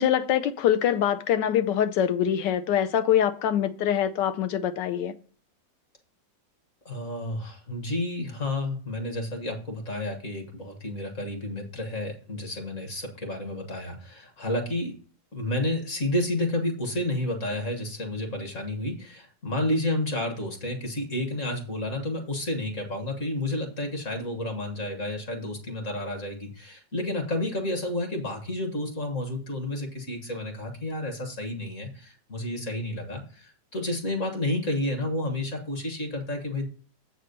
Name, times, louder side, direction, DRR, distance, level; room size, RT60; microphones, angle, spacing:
voice 1, 0.0-5.1, left 10 dB, 80° left, 1.2 m, -24 dB
voice 2, 6.9-14.9 15.3-36.7, left 1 dB, 45° left, 1.7 m, -30 dB
7.5 x 4.2 x 6.5 m
omnidirectional pair, 1.9 m